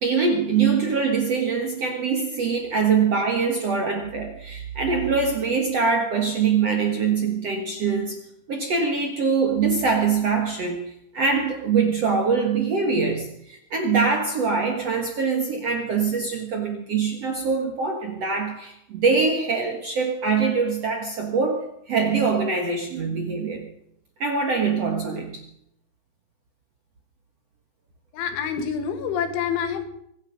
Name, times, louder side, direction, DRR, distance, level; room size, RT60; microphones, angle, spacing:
voice 1, 0.0-23.7 24.2-25.4, right 5 dB, 80° right, 3 dB, 1.4 m, -23 dB
voice 2, 28.1-29.8, left 7 dB, 75° left, 6 dB, 4.2 m, -27 dB
24.5 x 10.5 x 5.2 m, 0.74 s
omnidirectional pair, 5.6 m